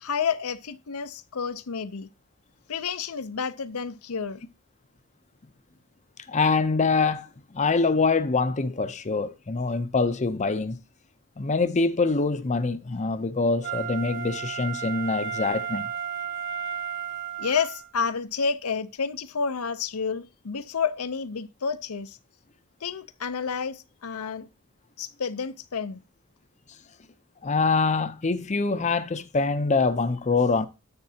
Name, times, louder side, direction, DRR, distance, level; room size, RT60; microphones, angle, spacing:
voice 1, 0.0-2.1 2.7-4.4 17.4-22.2 22.8-24.5 25.0-26.0, left 6 dB, 80° left, 0.7 m, -30 dB
voice 2, 6.3-7.3 7.5-10.8 11.4-15.9 27.4-30.7, left 4 dB, 30° left, 0.6 m, -24 dB
Wind instrument woodwind instrument, 13.6-17.9 18.4-18.5, right 8 dB, 60° right, 2.6 m, -33 dB
10.5 x 7.3 x 2.8 m
head